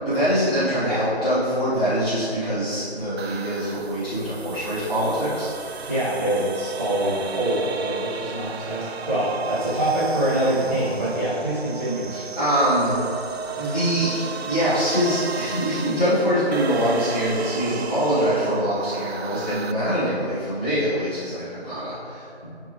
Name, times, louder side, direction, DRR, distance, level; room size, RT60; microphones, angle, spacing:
voice 1, 0.0-5.9 12.4-13.0 13.6-22.2, equal, 10° left, -15 dB, 1.1 m, -24 dB
sound 1, 3.2-19.7, right 5 dB, 75° right, 0.5 m, -34 dB
voice 2, 5.9-12.2, right 1 dB, 15° right, -15 dB, 0.9 m, -25 dB
10.5 x 3.5 x 3.2 m, 2.5 s
figure-of-eight pair, 160°, 32 cm